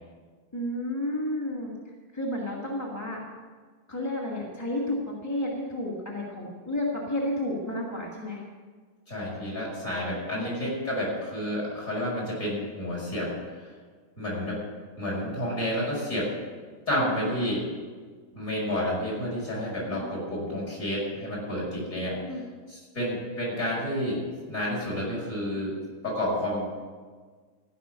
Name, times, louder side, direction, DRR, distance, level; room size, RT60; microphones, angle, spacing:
voice 1, 0.5-1.7 2.1-3.2 3.9-8.4 10.3-10.6 16.9-17.3 19.9-20.0 22.2-22.4, left 1 dB, 10° left, -4 dB, 1.7 m, -31 dB
voice 2, 9.1-13.3 13.6-13.7 14.2-14.6 15.0-16.3 16.9-17.6 18.3-22.2 22.7-25.8 26.0-26.7, left 1 dB, 40° left, -4 dB, 6.0 m, -30 dB
15.0 x 6.0 x 9.9 m, 1.5 s
omnidirectional pair, 2.2 m